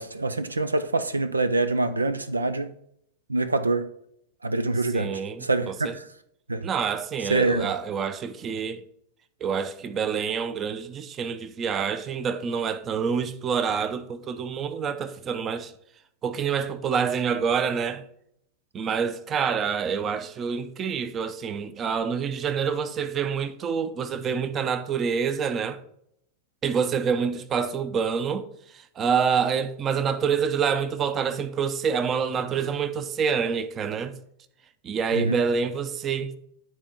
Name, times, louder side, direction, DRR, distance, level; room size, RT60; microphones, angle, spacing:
voice 1, 0.0-2.7 3.3-3.9 4.4-6.0 6.5-6.7 7.3-7.7 35.1-35.4, right 2 dB, 80° right, 0.4 m, -25 dB
voice 2, 4.9-5.9 6.6-8.8 9.4-15.7 16.2-18.0 18.7-25.8 26.6-28.4 28.7-34.1 34.8-36.4, right 6 dB, 25° right, 0.7 m, -27 dB
10.0 x 4.4 x 5.3 m
figure-of-eight pair, 90°, 0 cm